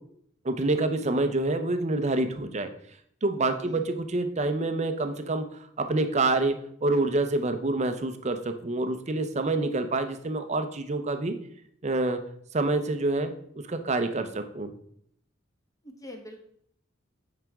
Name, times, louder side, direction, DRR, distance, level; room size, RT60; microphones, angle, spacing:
voice 1, 0.4-2.7 3.2-5.5 5.8-11.4 11.8-12.2 12.5-13.3 13.7-14.7, right 2 dB, 35° right, 8 dB, 0.6 m, -27 dB
voice 2, 15.8-16.4, left 1 dB, 15° left, 3 dB, 1.1 m, -43 dB
9.0 x 4.9 x 3.5 m, 0.67 s
head